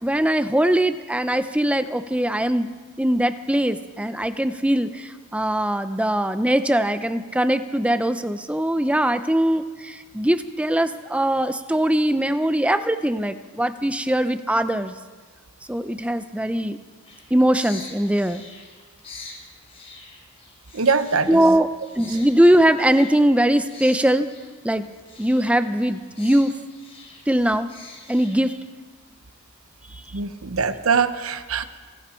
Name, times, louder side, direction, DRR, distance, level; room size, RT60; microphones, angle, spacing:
voice 1, 0.0-2.7 3.0-14.9 15.7-16.8 17.3-18.4 21.3-21.7 22.0-24.3 24.6-24.9 25.2-26.5 27.3-27.7 28.1-28.6, right 1 dB, 5° right, 11 dB, 0.6 m, -21 dB
sound 1, 17.0-28.7, left 3 dB, 30° left, 3.4 m, -45 dB
voice 2, 20.7-21.6 22.1-22.2 30.1-31.6, right 5 dB, 80° right, 11 dB, 0.9 m, -23 dB
28.5 x 11.5 x 4.5 m, 1.5 s
head